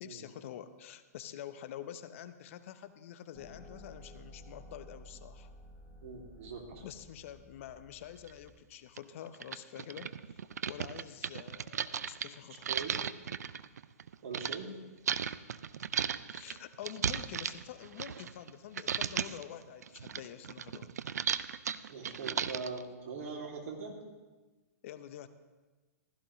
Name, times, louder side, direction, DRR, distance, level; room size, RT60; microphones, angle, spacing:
voice 1, 0.0-5.5 6.8-12.7 16.3-21.0 24.8-25.3, left 10 dB, 50° left, 12 dB, 0.7 m, -47 dB
sound 1, 3.3-8.6, left 1 dB, 15° left, 4.6 m, -53 dB
voice 2, 6.0-6.9 12.7-13.0 14.2-14.7 21.9-24.0, right 4 dB, 60° right, 1 dB, 2.6 m, -41 dB
sound 2, 8.3-8.4 9.0-9.1 9.3-14.6 15.1-18.5 18.8-19.4 19.8-22.8, right 8 dB, 75° right, 0.5 m, -35 dB
15.5 x 13.5 x 3.1 m, 1.2 s
hypercardioid pair, 120°, 9 cm